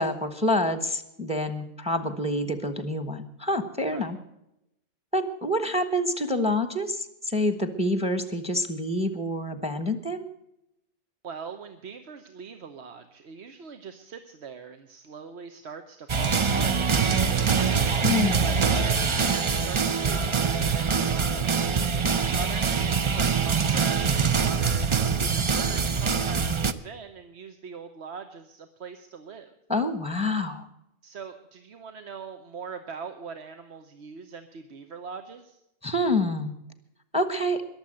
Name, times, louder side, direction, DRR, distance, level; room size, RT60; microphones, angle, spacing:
voice 1, 0.0-4.2 5.1-10.2 18.0-18.5 29.7-30.6 35.8-36.5 37.1-37.6, left 1 dB, 5° right, 10 dB, 1.1 m, -27 dB
voice 2, 11.2-18.1 18.4-21.6 22.3-29.5 31.0-35.6, right 5 dB, 70° right, 7 dB, 1.2 m, -41 dB
sound 1, 16.1-26.7, right 5 dB, 35° right, 0.5 m, -24 dB
21.5 x 7.3 x 7.6 m, 0.84 s
omnidirectional pair, 1.2 m